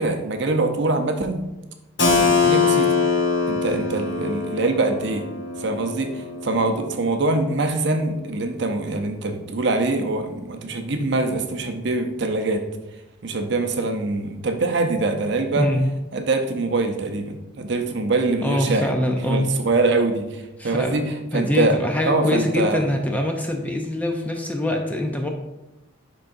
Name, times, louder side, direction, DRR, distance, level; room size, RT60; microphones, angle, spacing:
voice 1, 0.0-1.4 2.1-3.0 3.5-5.3 5.6-12.6 13.2-15.7 16.1-18.9 19.3-21.0 21.3-21.8 22.0-22.9, right 3 dB, 55° right, 5 dB, 0.6 m, -23 dB
Keyboard (musical), 2.0-7.5, left 4 dB, 55° left, 1.0 m, -23 dB
voice 2, 18.4-19.5 20.6-21.0 21.3-25.3, left 1 dB, 5° left, 2 dB, 0.5 m, -24 dB
10.0 x 3.8 x 2.6 m, 0.98 s
head